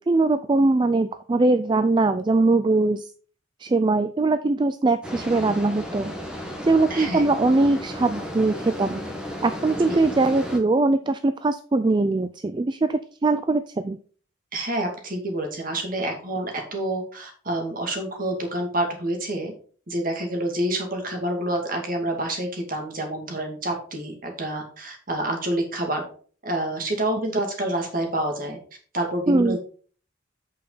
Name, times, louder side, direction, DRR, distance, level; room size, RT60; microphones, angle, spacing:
voice 1, 0.1-3.1 3.6-6.1 6.6-9.0 9.4-14.0 29.3-29.6, right 2 dB, 25° right, 11 dB, 0.3 m, -21 dB
sound 1, 5.0-10.6, equal, 5° right, 1.4 m, -34 dB
voice 2, 6.9-7.3 9.7-10.0 14.5-19.5 19.9-26.0 26.4-28.6 28.9-29.6, right 1 dB, 45° right, 3 dB, 2.4 m, -28 dB
8.4 x 6.4 x 4.0 m, 0.43 s
head